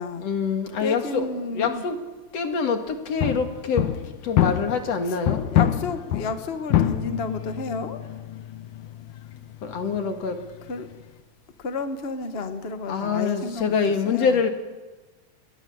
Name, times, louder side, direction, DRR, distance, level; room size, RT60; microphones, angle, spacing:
voice 1, 0.2-1.3 1.5-2.0 2.3-3.9 4.2-5.4 9.6-10.4 12.9-14.5, left 5 dB, 60° left, 6 dB, 3.0 m, -25 dB
voice 2, 0.8-1.8 5.0-5.2 5.5-8.0 10.7-10.9 11.6-14.4, left 3 dB, 40° left, 8 dB, 0.8 m, -31 dB
sound 1, 3.2-5.0 5.3-11.1, left 11 dB, 85° left, 2.6 m, -26 dB
29.5 x 21.5 x 7.2 m, 1.3 s
omnidirectional pair, 3.5 m